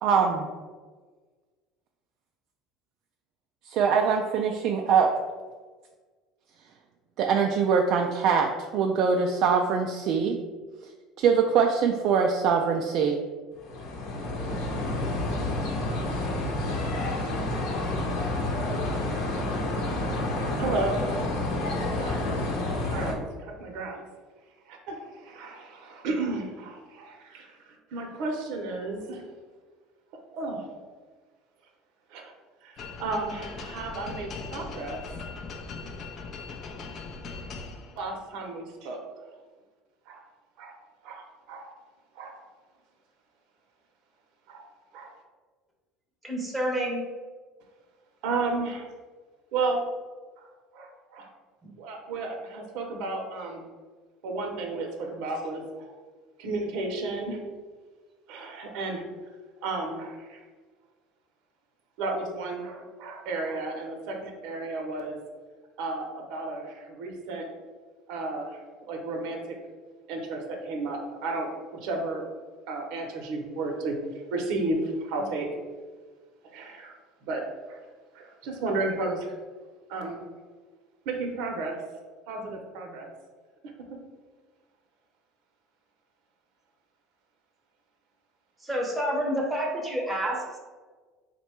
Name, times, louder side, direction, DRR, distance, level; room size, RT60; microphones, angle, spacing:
voice 1, 0.0-0.5 3.7-5.1 7.2-10.4 11.2-13.2, right 6 dB, 55° right, 2 dB, 0.3 m, -23 dB
sound 1, 13.6-23.1, left 2 dB, 60° left, 0.8 m, -29 dB
voice 2, 20.6-21.6 22.0-24.0 24.7-29.2 30.3-30.6 32.1-32.3 32.6-32.7 33.0-35.2 38.0-39.0 40.1-40.2 40.6-40.8 41.0-41.7 42.1-42.4 44.5-44.7 44.9-45.1 48.2-48.9 49.5-49.8 50.4-50.5 50.7-51.3 51.8-53.6 54.2-55.9 56.4-57.4 58.3-59.0 59.6-60.4 62.0-65.2 65.8-67.5 68.1-68.6 68.9-69.6 70.1-72.2 72.7-74.0 74.3-75.5 76.5-76.9 77.2-77.4 77.7-77.8 78.1-79.4 79.9-80.2 81.0-81.8 82.3-83.1 83.9-84.0, right 3 dB, 70° right, 2 dB, 0.8 m, -33 dB
sound 2, 32.8-38.2, left 4 dB, 35° left, 0.4 m, -40 dB
voice 3, 46.2-47.1 51.6-51.7 88.6-90.6, equal, 5° right, -2 dB, 0.8 m, -29 dB
4.0 x 2.2 x 4.3 m, 1.4 s
cardioid pair, 150°, 0 cm